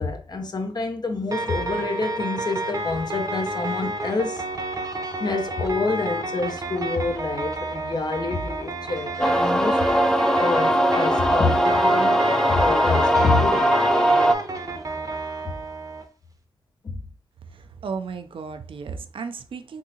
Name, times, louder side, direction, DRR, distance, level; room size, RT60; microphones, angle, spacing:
voice 1, 0.0-4.5 5.2-9.9 10.4-13.7 16.8-17.0, left 3 dB, 50° left, 0.7 m, -27 dB
sound 1, 1.3-16.0, right 1 dB, 40° right, 0.7 m, -30 dB
sound 2, 9.2-14.4, equal, 5° left, 0.4 m, -20 dB
voice 2, 17.5-19.8, right 5 dB, 80° right, 0.4 m, -34 dB
3.7 x 2.7 x 2.7 m
cardioid pair, 55°, 9 cm